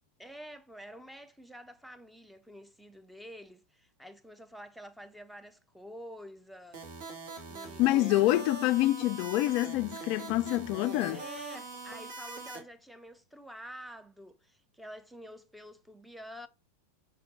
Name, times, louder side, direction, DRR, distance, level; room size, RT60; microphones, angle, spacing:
voice 1, 0.2-6.9 7.5-8.2 11.1-16.5, equal, ahead, 0.8 m, -48 dB
sound 1, 6.7-12.6, right 3 dB, 50° right, 2.3 m, -42 dB
voice 2, 7.8-11.2, left 17 dB, 45° left, 0.3 m, -26 dB
6.0 x 4.3 x 5.2 m
figure-of-eight pair, 90°, 0 cm